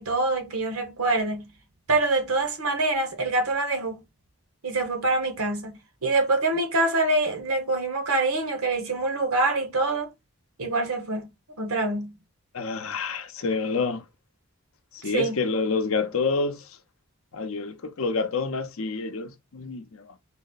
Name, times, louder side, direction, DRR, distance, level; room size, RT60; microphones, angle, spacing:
voice 1, 0.0-1.5 1.9-4.0 4.6-10.1 10.6-11.3 11.6-12.2 15.0-15.4, right 2 dB, 80° right, 1.2 m, -25 dB
voice 2, 12.5-14.1 14.9-16.7 17.3-20.1, left 4 dB, 70° left, 0.6 m, -28 dB
4.1 x 2.1 x 4.0 m
head